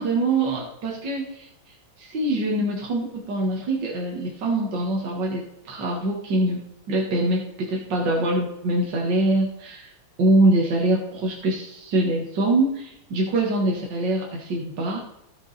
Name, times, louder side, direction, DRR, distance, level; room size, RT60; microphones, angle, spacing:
voice 1, 0.0-1.5 2.0-6.6 6.9-9.9 10.2-15.0, right 2 dB, 60° right, -1 dB, 2.3 m, -24 dB
16.0 x 5.4 x 4.2 m, 0.80 s
omnidirectional pair, 2.2 m